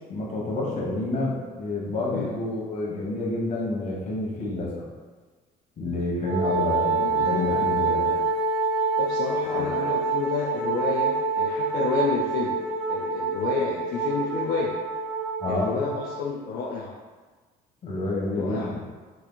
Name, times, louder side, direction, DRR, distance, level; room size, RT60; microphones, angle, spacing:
voice 1, 0.1-4.9 5.8-8.1 9.5-9.7 15.4-15.9 17.8-18.8, left 2 dB, 45° left, -3 dB, 1.2 m, -29 dB
Wind instrument woodwind instrument, 6.3-16.2, right 3 dB, 65° right, 0.5 m, -26 dB
voice 2, 7.0-8.2 9.0-12.6 12.9-14.7 15.5-16.9 18.4-18.7, left 5 dB, 70° left, -2 dB, 0.5 m, -30 dB
4.7 x 3.4 x 2.2 m, 1.4 s
cardioid pair, 110°, 17 cm